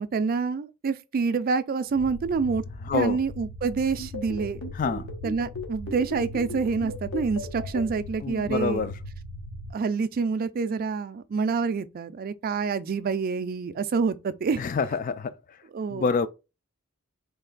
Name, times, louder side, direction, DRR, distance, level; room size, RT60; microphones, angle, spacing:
voice 1, 0.0-2.6 2.9-4.6 5.2-8.9 9.7-14.6 15.7-16.1, right 5 dB, 40° right, 0.3 m, -27 dB
sound 1, 1.9-9.7, left 1 dB, 90° left, 1.0 m, -40 dB
voice 2, 2.8-3.2 4.7-5.1 8.2-8.9 14.6-15.3 15.9-16.3, left 5 dB, 40° left, 0.3 m, -26 dB
sound 2, 4.0-7.8, left 2 dB, 65° left, 1.0 m, -36 dB
3.2 x 2.8 x 3.8 m
head